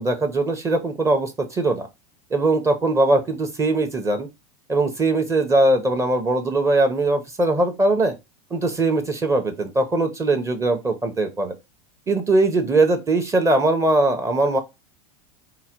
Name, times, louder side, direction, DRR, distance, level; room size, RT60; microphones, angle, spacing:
voice 1, 0.0-1.9 2.3-4.3 4.7-8.1 8.5-11.5 12.1-14.6, right 2 dB, 15° right, 0.7 m, -20 dB
4.8 x 2.1 x 4.3 m
supercardioid pair, 130°, 18 cm